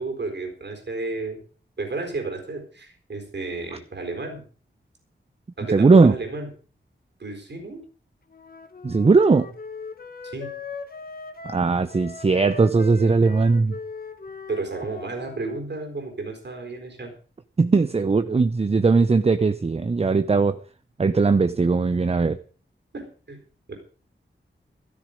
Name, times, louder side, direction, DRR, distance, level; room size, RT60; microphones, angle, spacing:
voice 1, 0.0-1.4 1.8-4.4 5.6-6.5 7.2-7.8 10.2-10.5 14.5-17.1 22.9-23.4 23.7-23.8, right 3 dB, 60° right, 4 dB, 4.1 m, -32 dB
voice 2, 5.7-6.1 8.8-9.5 11.4-13.7 17.6-20.6 21.0-22.4, right 4 dB, 30° right, 12 dB, 0.6 m, -19 dB
Wind instrument woodwind instrument, 8.3-15.6, left 4 dB, 45° left, 1.4 m, -39 dB
13.5 x 12.5 x 5.1 m, 0.39 s
wide cardioid pair, 95°, 21 cm